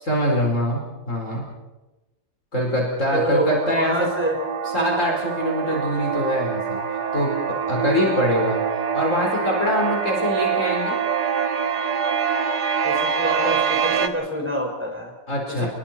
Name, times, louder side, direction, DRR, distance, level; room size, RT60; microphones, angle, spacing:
voice 1, 0.0-1.4 2.5-4.1 4.7-7.3 7.7-8.6 8.9-11.0 15.3-15.7, equal, 50° left, -1 dB, 5.1 m, -23 dB
voice 2, 3.1-4.4 12.8-15.1 15.5-15.7, equal, 5° right, 0 dB, 5.7 m, -26 dB
sound 1, 3.5-14.1, right 7 dB, 75° right, 1.8 m, -25 dB
29.5 x 22.0 x 4.6 m, 1.1 s
omnidirectional pair, 1.7 m